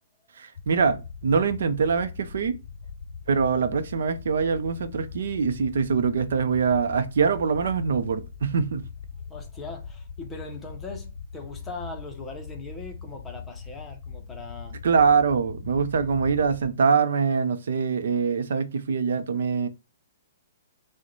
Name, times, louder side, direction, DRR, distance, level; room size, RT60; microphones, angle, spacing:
voice 1, 0.4-2.5 3.3-8.8 14.8-19.7, right 5 dB, 65° right, 0.5 m, -24 dB
sound 1, 0.6-16.7, left 5 dB, 55° left, 0.5 m, -41 dB
voice 2, 9.3-14.8 15.7-15.8, left 3 dB, 10° left, 0.6 m, -40 dB
6.2 x 2.1 x 3.0 m
hypercardioid pair, 175°, 0 cm